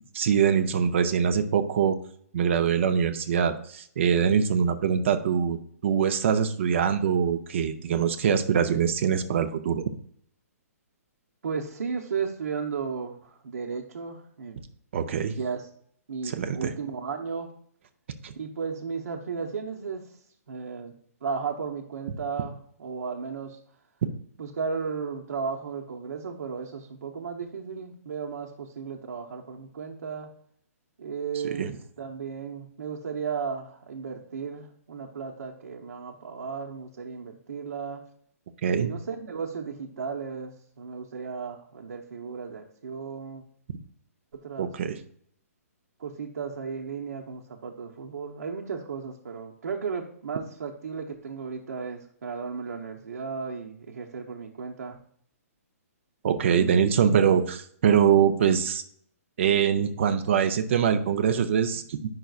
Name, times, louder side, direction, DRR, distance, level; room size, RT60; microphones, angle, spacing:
voice 1, 0.1-2.0 2.3-9.8 14.9-15.3 16.3-16.7 18.2-18.3 31.4-31.7 38.6-38.9 44.6-45.0 56.2-58.8 59.4-62.1, right 7 dB, 50° right, 8 dB, 0.5 m, -23 dB
voice 2, 11.4-14.6 15.4-15.7 16.1-17.5 18.4-20.2 20.5-20.9 21.2-23.6 24.4-30.3 31.0-38.0 38.8-43.4 44.4-44.7 46.0-55.0, right 5 dB, 80° right, 0 dB, 0.9 m, -34 dB
9.1 x 5.7 x 2.4 m, 0.63 s
hypercardioid pair, 160°, 8 cm